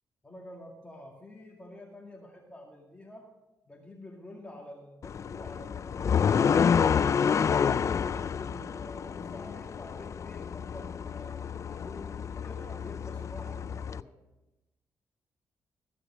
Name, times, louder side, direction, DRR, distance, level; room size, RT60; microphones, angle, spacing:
voice 1, 0.2-3.3 3.7-7.4 7.8-14.2, left 1 dB, 15° left, -2 dB, 2.1 m, -48 dB
sound 1, 5.0-14.0, left 7 dB, 50° left, 0.4 m, -29 dB
14.5 x 6.6 x 6.0 m, 1.0 s
cardioid pair, 75°, 7 cm